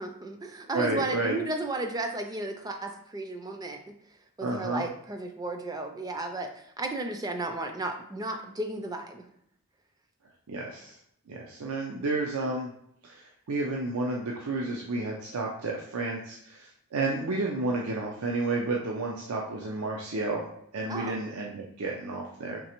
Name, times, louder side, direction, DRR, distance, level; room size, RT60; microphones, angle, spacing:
voice 1, 0.0-3.8 4.4-9.3 20.9-21.2, right 2 dB, 15° right, 5 dB, 0.3 m, -34 dB
voice 2, 0.7-1.4 4.4-4.9 10.5-11.0 11.3-12.7 13.0-20.5 20.7-22.6, right 2 dB, 85° right, -1 dB, 0.6 m, -31 dB
5.3 x 3.1 x 3.0 m, 0.72 s
head